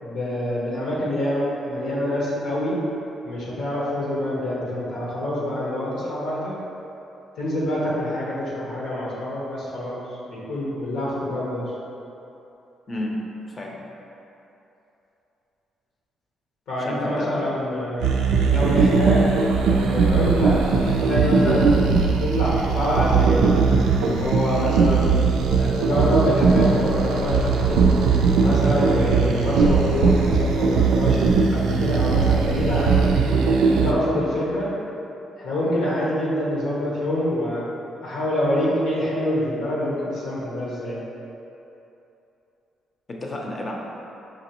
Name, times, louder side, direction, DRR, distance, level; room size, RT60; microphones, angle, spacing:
voice 1, 0.0-2.8 3.2-6.5 7.4-10.0 10.3-11.6 16.7-18.1 18.5-19.3 19.7-21.7 22.2-23.6 23.9-25.2 25.5-27.9 28.4-31.2 31.5-33.1 33.6-34.7 35.4-37.7 38.0-41.0, left 1 dB, 85° left, -6 dB, 0.9 m, -26 dB
voice 2, 12.9-13.8 16.8-17.4 43.1-43.7, left 1 dB, 35° left, -1 dB, 0.6 m, -31 dB
sound 1, 18.0-33.9, right 5 dB, 85° right, 0.3 m, -19 dB
5.0 x 2.9 x 2.9 m, 2.9 s
cardioid pair, 90°, 0 cm